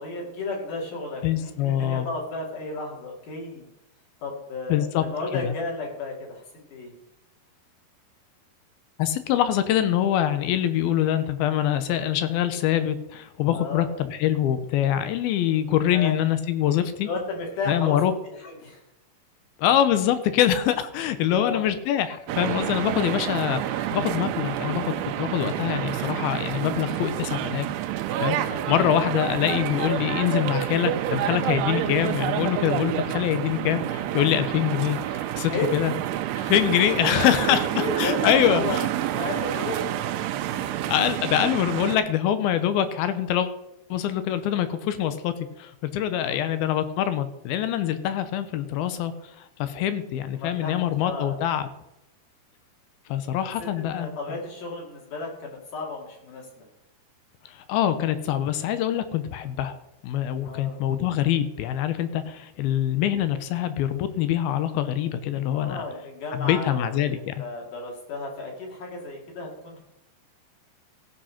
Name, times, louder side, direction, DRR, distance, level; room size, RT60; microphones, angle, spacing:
voice 1, 0.0-3.6 4.2-6.9 13.5-13.9 15.9-16.1 17.1-18.0 18.6-18.8 21.2-21.6 28.4-28.8 35.5-35.7 36.4-36.6 37.0-38.8 39.1-39.8 40.5-40.8 46.1-46.6 50.3-50.7 51.0-51.4 53.6-56.7 60.5-60.9 65.5-69.8, left 3 dB, 55° left, 0 dB, 3.7 m, -33 dB
voice 2, 1.2-2.1 4.7-5.0 5.3-5.5 9.0-17.1 17.7-18.1 19.6-27.7 28.2-35.9 36.4-38.9 40.9-43.5 43.9-51.7 53.1-54.4 57.5-59.7 60.0-65.8 66.3-67.4, left 11 dB, 75° left, 12 dB, 2.4 m, -24 dB
sound 1, 22.3-42.0, right 12 dB, 80° right, 2.6 m, -28 dB
15.5 x 5.3 x 5.8 m, 0.86 s
omnidirectional pair, 4.9 m